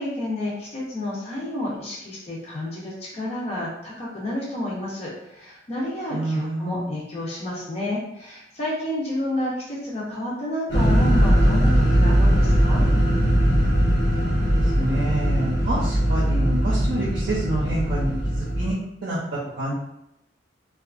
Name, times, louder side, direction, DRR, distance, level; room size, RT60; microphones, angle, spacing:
voice 1, 0.0-12.8, left 1 dB, 35° left, -5 dB, 0.6 m, -30 dB
voice 2, 6.1-6.9 14.2-19.7, right 1 dB, 55° right, -6 dB, 0.6 m, -28 dB
sound 1, 10.7-18.7, equal, 70° left, 0.9 m, -20 dB
2.6 x 2.4 x 2.4 m, 0.81 s
head